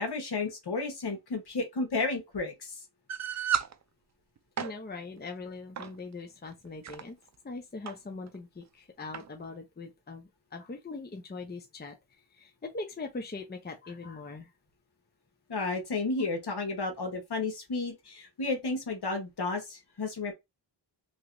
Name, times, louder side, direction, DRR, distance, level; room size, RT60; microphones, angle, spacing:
voice 1, 0.0-2.7 15.5-20.3, left 3 dB, 60° left, 1.3 m, -32 dB
sound 1, 3.1-3.7 4.4-4.7 5.8-6.0 6.6-7.0 7.9-8.0 8.3-8.4 9.1-9.3, right 8 dB, 40° right, 0.4 m, -32 dB
voice 2, 4.6-7.2 7.4-12.0 12.3-14.5, left 3 dB, 25° left, 0.7 m, -41 dB
3.1 x 2.9 x 2.6 m
wide cardioid pair, 75°, 43 cm